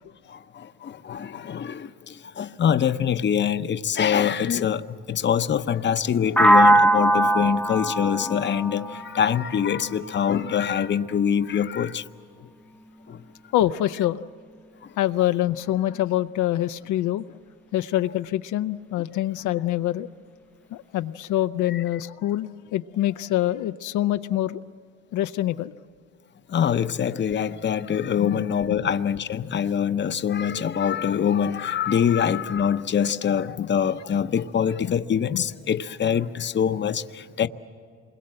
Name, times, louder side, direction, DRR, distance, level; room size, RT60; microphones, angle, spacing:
voice 1, 0.3-12.1 12.4-12.5 13.1-13.2 14.8-14.9 21.7-21.8 26.5-37.5, left 8 dB, 40° left, 0.7 m, -24 dB
sound 1, 6.4-10.2, right 1 dB, 5° left, 0.6 m, -20 dB
voice 2, 13.5-14.2 15.0-17.2 17.7-20.1 20.7-24.6 25.1-25.7 28.2-28.4 28.7-28.8 35.3-35.4, left 13 dB, 80° left, 0.6 m, -25 dB
27.5 x 22.0 x 7.7 m
cardioid pair, 95°, 30 cm